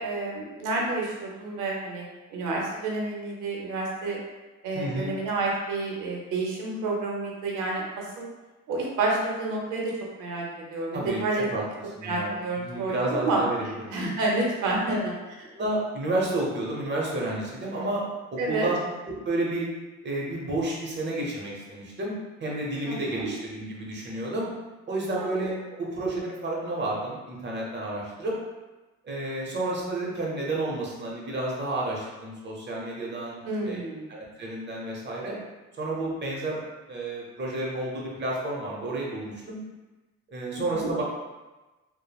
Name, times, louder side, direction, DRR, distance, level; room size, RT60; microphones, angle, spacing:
voice 1, 0.0-2.0 2.3-4.2 4.6-8.3 8.7-9.9 10.2-10.5 10.7-11.4 12.0-13.4 13.9-15.1 18.4-18.7 22.9-23.3 25.1-25.3 33.4-34.1 40.5-40.9, right 2 dB, 90° right, -2 dB, 0.7 m, -29 dB
voice 2, 4.7-5.1 10.9-11.2 11.5-11.6 12.0-14.0 14.9-15.0 15.5-18.0 18.3-18.8 19.1-19.7 20.0-24.5 24.9-28.4 29.0-33.8 34.1-35.4 35.8-36.6 36.9-39.6 40.3-41.0, right 2 dB, 35° right, -3 dB, 0.8 m, -31 dB
3.0 x 2.1 x 2.3 m, 1.2 s
cardioid pair, 90°, 30 cm